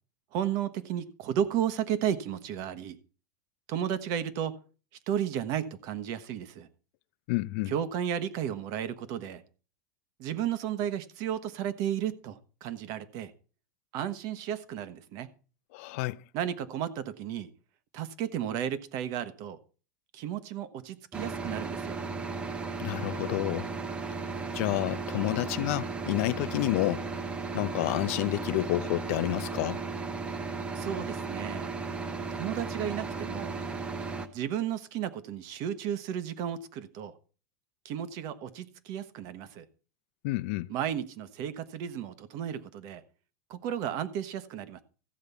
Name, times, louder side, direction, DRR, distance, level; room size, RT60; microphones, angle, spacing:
voice 1, 0.3-3.0 3.7-4.6 5.1-6.7 7.7-9.4 10.2-13.3 13.9-15.3 16.3-17.5 17.9-19.6 20.1-22.0 30.7-31.7 32.3-33.6 34.3-37.1 37.8-39.7 40.7-43.0 43.5-44.8, right 10 dB, 40° right, 1.2 m, -33 dB
voice 2, 7.3-7.7 15.7-16.2 22.8-23.7 24.5-27.3 27.5-29.8 40.2-40.7, left 19 dB, 50° left, 0.6 m, -29 dB
sound 1, 21.1-34.3, right 4 dB, 10° right, 0.9 m, -35 dB
14.5 x 5.2 x 8.3 m
supercardioid pair, 165°, 9 cm